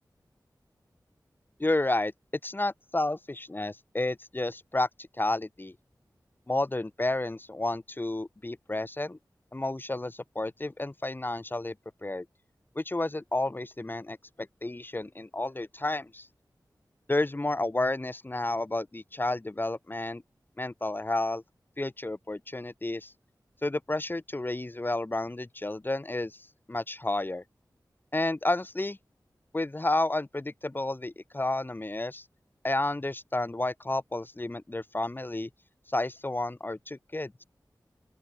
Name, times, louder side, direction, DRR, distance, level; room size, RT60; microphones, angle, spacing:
voice 1, 1.6-2.1 2.4-5.8 6.5-9.2 9.5-11.7 12.0-12.3 12.8-16.3 17.1-20.2 20.6-21.4 21.8-23.1 23.6-27.4 28.1-29.0 29.5-32.2 32.6-35.5 35.9-37.4, left 2 dB, 30° left, 4.2 m, -31 dB
open air
wide cardioid pair, 95°, 7 cm